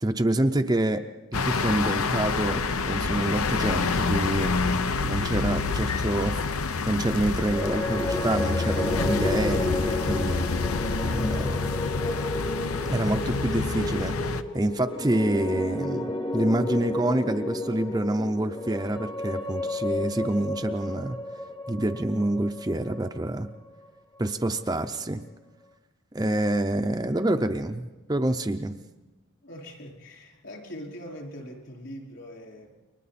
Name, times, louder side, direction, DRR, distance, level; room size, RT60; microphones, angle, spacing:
voice 1, 0.0-1.1 1.3-2.6 2.9-4.6 5.0-6.4 6.9-10.5 11.0-11.7 12.9-14.1 14.5-21.2 21.7-23.5 24.2-25.2 26.1-28.8, right 1 dB, 20° right, 6 dB, 0.6 m, -27 dB
sound 1, 1.3-14.4, left 4 dB, 85° left, 0.9 m, -27 dB
sound 2, 7.4-23.7, left 2 dB, 20° left, 1.0 m, -32 dB
voice 2, 11.7-12.3 29.4-32.8, equal, 55° left, 0 dB, 4.8 m, -42 dB
29.5 x 23.5 x 4.2 m, 1.2 s
head